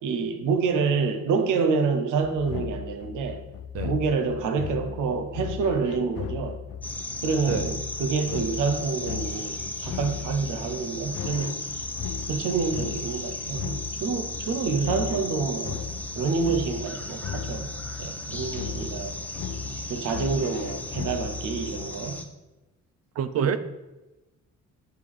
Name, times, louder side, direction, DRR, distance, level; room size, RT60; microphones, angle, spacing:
voice 1, 0.0-3.4 3.8-6.6 7.2-11.8 12.3-15.9 16.1-17.7 18.0-19.1 19.9-22.2 23.4-23.6, right 5 dB, 85° right, 7 dB, 0.9 m, -27 dB
sound 1, 2.2-22.1, left 8 dB, 50° left, 0.6 m, -37 dB
sound 2, 6.8-22.3, left 1 dB, 5° left, 0.7 m, -36 dB
voice 2, 18.3-18.9 23.2-23.6, right 8 dB, 55° right, 13 dB, 0.5 m, -29 dB
8.2 x 3.7 x 4.7 m, 1.1 s
cardioid pair, 90°, 30 cm